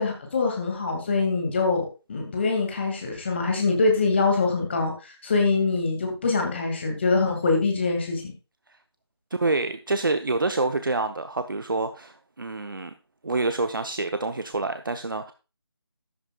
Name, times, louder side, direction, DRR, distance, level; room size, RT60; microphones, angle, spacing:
voice 1, 0.0-8.3, left 3 dB, 25° left, 2 dB, 2.2 m, -24 dB
voice 2, 9.3-12.9 13.2-15.3, right 3 dB, 50° right, 8 dB, 0.9 m, -27 dB
13.5 x 10.5 x 2.4 m, 0.31 s
figure-of-eight pair, 160°, 14 cm